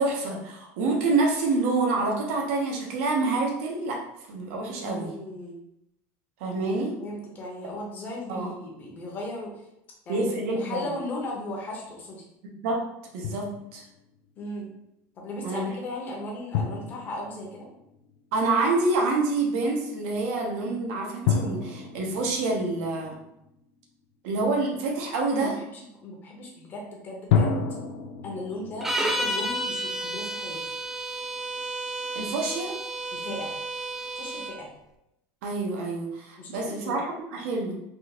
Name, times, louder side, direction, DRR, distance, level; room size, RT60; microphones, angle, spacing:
voice 1, 0.0-4.0 4.3-5.1 6.4-7.0 8.3-8.5 10.1-10.9 12.6-12.8 13.1-13.8 15.4-15.7 18.3-23.2 24.2-25.6 32.1-32.8 35.4-37.7, right 3 dB, 85° right, 0 dB, 0.9 m, -27 dB
voice 2, 4.7-5.6 7.0-9.5 10.1-12.2 14.4-14.7 15.2-17.7 25.3-27.5 28.2-30.6 33.1-33.6 34.2-34.7 36.4-37.0, left 1 dB, 30° left, -2 dB, 0.8 m, -36 dB
Drum, 13.2-14.0 16.5-18.3 21.3-23.7 27.3-30.5, left 6 dB, 80° left, 0.4 m, -30 dB
sound 1, 28.8-34.6, right 1 dB, 5° right, 0.3 m, -31 dB
3.5 x 2.4 x 3.0 m, 0.84 s
cardioid pair, 160°, 7 cm